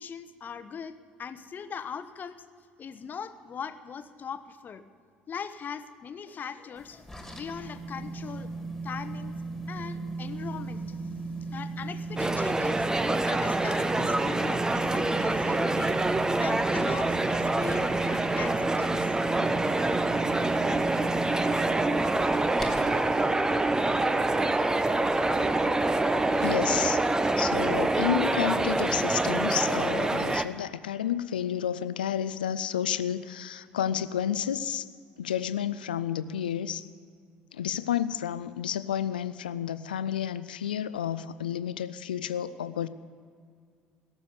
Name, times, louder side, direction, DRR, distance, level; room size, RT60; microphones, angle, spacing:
voice 1, 0.0-2.4 2.8-4.8 5.3-7.1 7.3-8.5 8.8-9.3 9.7-11.0 11.5-12.8 13.2-16.0 16.4-19.1, left 7 dB, 40° left, 11 dB, 0.9 m, -40 dB
sound 1, 6.8-23.1, right 3 dB, 5° left, 2.6 m, -37 dB
sound 2, 12.2-30.5, right 2 dB, 15° right, 0.7 m, -26 dB
voice 2, 26.4-27.0 27.4-34.9 35.2-36.9 37.5-42.9, left 10 dB, 80° left, 14 dB, 0.4 m, -31 dB
17.0 x 7.1 x 9.5 m, 2.2 s
figure-of-eight pair, 55°, 5 cm